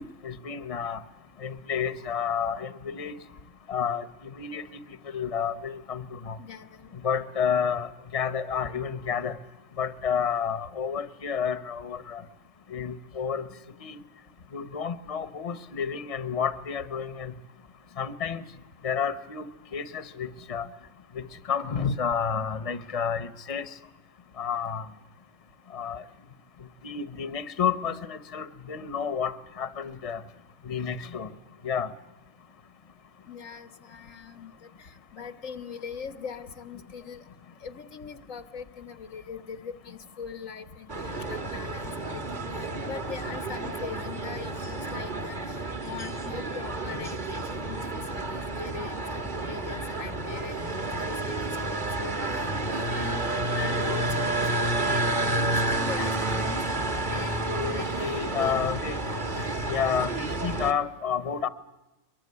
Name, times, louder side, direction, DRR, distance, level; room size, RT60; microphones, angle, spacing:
voice 1, 0.2-1.0 1.4-3.1 3.7-4.0 4.4-4.6 5.1-6.4 7.0-9.4 9.8-12.2 12.7-13.5 13.8-14.0 14.5-17.3 18.0-18.4 18.8-19.5 19.7-20.7 21.1-23.7 24.4-24.8 25.7-26.0 26.8-30.2 30.6-31.3 31.6-31.9 57.4-59.0 59.4-61.5, left 7 dB, 30° left, 12 dB, 1.0 m, -30 dB
voice 2, 6.4-6.9 33.3-34.5 34.8-37.2 37.6-42.2 42.5-45.5 45.8-47.8 48.1-52.1 52.7-57.9 58.4-59.6, left 6 dB, 90° left, 10 dB, 1.8 m, -41 dB
sound 1, 40.9-60.7, right 2 dB, 40° right, 1.6 m, -30 dB
23.0 x 23.0 x 9.7 m, 1.0 s
omnidirectional pair, 1.3 m